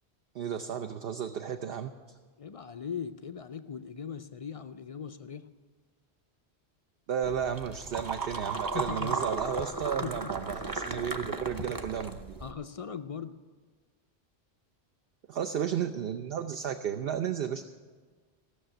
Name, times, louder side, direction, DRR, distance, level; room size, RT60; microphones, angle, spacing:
voice 1, 0.3-1.9 7.1-12.3 15.3-17.6, right 8 dB, 65° right, 7 dB, 0.8 m, -33 dB
voice 2, 2.4-5.5 8.7-9.2 10.0-10.4 12.4-13.3, left 7 dB, 50° left, 10 dB, 0.4 m, -39 dB
sound 1, 7.2-12.5, right 3 dB, 20° right, 0.7 m, -35 dB
15.5 x 6.7 x 8.9 m, 1.5 s
omnidirectional pair, 1.1 m